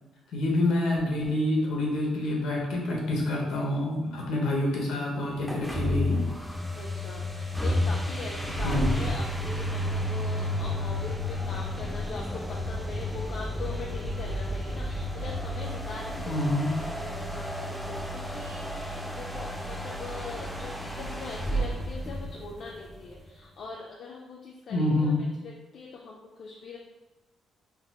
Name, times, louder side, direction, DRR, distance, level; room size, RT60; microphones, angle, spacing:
voice 1, 0.3-6.2 8.6-9.0 16.3-16.7 24.7-25.2, left 1 dB, 80° left, -2 dB, 0.9 m, -27 dB
sound 1, 5.4-22.9, left 1 dB, ahead, 0.5 m, -32 dB
voice 2, 6.7-12.2 12.5-25.1 25.4-26.8, left 4 dB, 60° left, -2 dB, 0.4 m, -41 dB
3.8 x 2.9 x 2.3 m, 1.1 s
cardioid pair, 90°, 0 cm